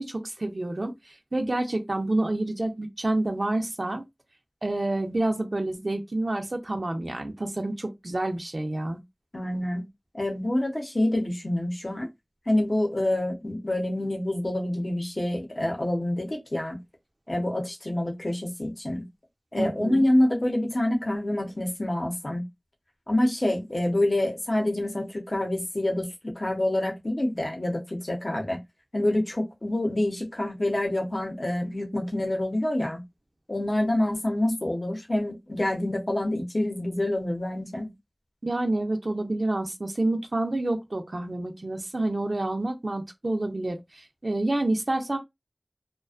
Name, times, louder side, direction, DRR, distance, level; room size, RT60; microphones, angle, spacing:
voice 1, 0.0-4.0 4.6-9.0 19.6-20.1 38.4-45.2, right 2 dB, 75° right, 0.5 m, -28 dB
voice 2, 9.3-9.9 10.1-12.1 12.5-16.8 17.3-19.0 19.5-22.4 23.1-28.6 28.9-33.0 33.5-37.9, left 1 dB, 65° left, 0.7 m, -27 dB
2.4 x 2.2 x 2.3 m
wide cardioid pair, 40°, 0 cm